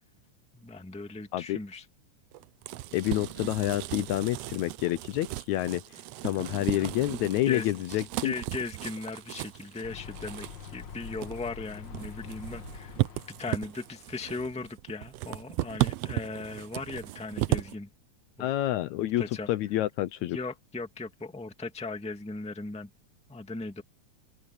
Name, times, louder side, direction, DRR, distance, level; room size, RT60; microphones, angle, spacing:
voice 1, 0.5-1.8 6.4-6.9 7.5-17.9 18.4-18.5 19.0-19.5 20.3-22.9 23.3-23.8, left 3 dB, 5° left, 1.3 m, -38 dB
sound 1, 2.3-17.7, right 17 dB, 85° right, 1.4 m, -35 dB
voice 2, 2.9-5.8 6.2-8.3 18.4-20.4, left 14 dB, 75° left, 1.9 m, -28 dB
sound 2, 9.8-14.1, left 7 dB, 50° left, 1.5 m, -45 dB
omnidirectional pair, 3.6 m